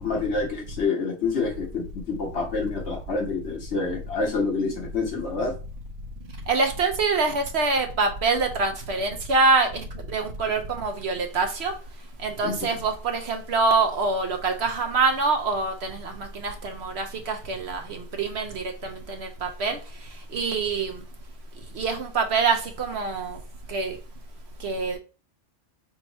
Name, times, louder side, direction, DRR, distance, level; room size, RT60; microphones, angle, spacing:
voice 1, 0.0-5.5 12.4-12.6, left 4 dB, 60° left, 1.4 m, -27 dB
voice 2, 6.5-9.7 10.1-11.7 12.2-19.8 20.3-20.9 21.8-23.4 23.7-24.0 24.6-25.0, right 4 dB, 65° right, 0.9 m, -25 dB
4.4 x 3.5 x 2.9 m
omnidirectional pair, 1.3 m